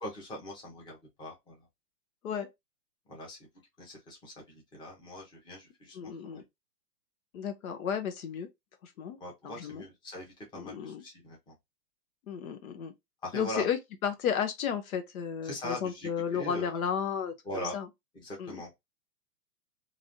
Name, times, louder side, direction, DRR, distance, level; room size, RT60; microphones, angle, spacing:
voice 1, 0.0-1.6 3.1-3.4 3.8-6.0 6.2-6.4 9.2-11.5 13.2-13.7 15.4-16.7 17.4-17.7 18.1-18.8, left 1 dB, 10° left, 0.9 m, -41 dB
voice 2, 5.9-6.4 7.3-8.5 8.8-9.2 9.4-9.8 10.5-11.0 12.3-12.9 13.3-17.9 18.4-18.6, left 8 dB, 60° left, 0.8 m, -33 dB
3.2 x 2.6 x 2.5 m
hypercardioid pair, 145°, 48 cm